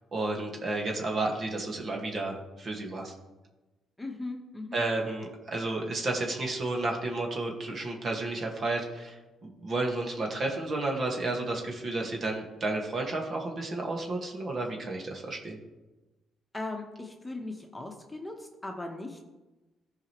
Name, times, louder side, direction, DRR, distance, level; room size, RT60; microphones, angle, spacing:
voice 1, 0.1-3.1 4.7-9.2 9.6-15.6, right 2 dB, 45° right, 1 dB, 1.7 m, -32 dB
voice 2, 4.0-4.8 16.5-19.3, left 2 dB, 15° left, 2 dB, 1.2 m, -38 dB
14.5 x 5.0 x 3.1 m, 1.1 s
cardioid pair, 90°, 0 cm